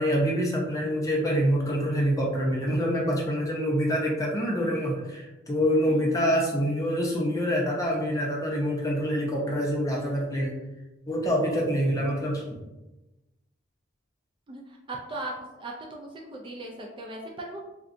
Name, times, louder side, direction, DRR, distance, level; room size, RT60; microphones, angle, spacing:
voice 1, 0.0-10.6 11.1-12.4, equal, 20° left, -2 dB, 0.6 m, -26 dB
voice 2, 14.5-17.6, right 2 dB, 25° right, -1 dB, 0.3 m, -38 dB
3.8 x 2.2 x 2.5 m, 1.0 s
head